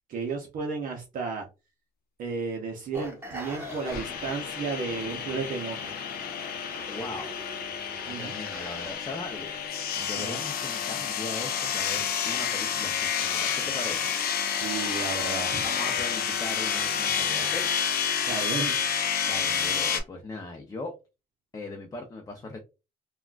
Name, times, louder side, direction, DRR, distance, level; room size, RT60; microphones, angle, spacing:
voice 1, 0.1-1.5 2.2-5.9 8.1-8.4 10.2-10.4 14.5-15.6 18.3-18.7, right 5 dB, 55° right, 0.6 m, -33 dB
sound 1, 2.9-9.7, equal, 15° right, 1.0 m, -44 dB
sound 2, 3.4-20.0, left 7 dB, 65° left, 0.7 m, -29 dB
voice 2, 6.8-7.4 8.2-9.5 10.0-14.1 15.6-17.7 19.2-20.9 21.5-22.6, left 2 dB, 20° left, 0.5 m, -39 dB
3.5 x 2.2 x 2.3 m
cardioid pair, 110°, 17 cm